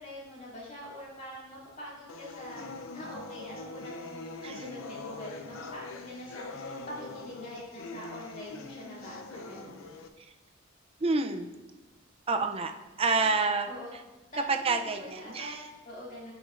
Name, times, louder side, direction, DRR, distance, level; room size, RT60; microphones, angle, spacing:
voice 1, 0.0-2.7 2.9-9.8 13.2-13.3 13.6-13.9 14.3-16.3, left 1 dB, 40° left, -6 dB, 2.8 m, -44 dB
sound 1, 2.1-10.1, left 3 dB, 85° left, 0.7 m, -43 dB
voice 2, 11.0-11.5 12.3-12.7 13.0-13.7 14.5-15.6, right 4 dB, 30° right, 6 dB, 0.5 m, -28 dB
15.0 x 6.0 x 2.6 m, 1.1 s
head